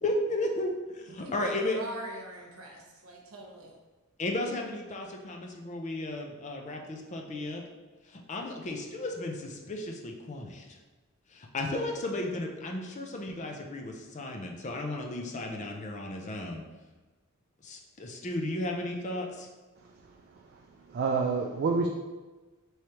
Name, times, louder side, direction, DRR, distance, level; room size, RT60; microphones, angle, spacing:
voice 1, 0.0-1.8 4.2-7.6 8.1-10.7 11.3-16.6 17.6-19.5, left 1 dB, 35° left, 2 dB, 0.5 m, -34 dB
voice 2, 1.1-3.8, right 1 dB, 80° right, -1 dB, 0.9 m, -43 dB
voice 3, 20.9-21.9, right 4 dB, 45° right, 2 dB, 0.3 m, -27 dB
4.7 x 3.2 x 2.9 m, 1.2 s
head